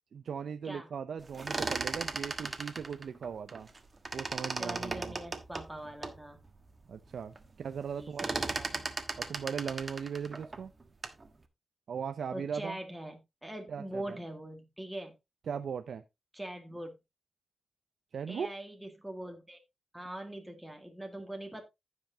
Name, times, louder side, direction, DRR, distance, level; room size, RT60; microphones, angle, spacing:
voice 1, 0.1-3.7 4.1-5.1 6.9-8.3 9.2-10.7 11.9-12.8 13.7-14.2 15.5-16.0 18.1-18.5, right 7 dB, 80° right, 0.6 m, -38 dB
sound 1, 1.2-3.8 4.0-6.2 6.7-6.8 7.0-7.5 7.7-11.3, right 3 dB, 35° right, 1.3 m, -37 dB
voice 2, 4.6-6.4 8.0-8.9 12.3-15.1 16.3-16.9 18.3-19.6 19.9-21.6, right 1 dB, 5° right, 1.8 m, -42 dB
15.0 x 5.7 x 2.8 m
wide cardioid pair, 100°, 0 cm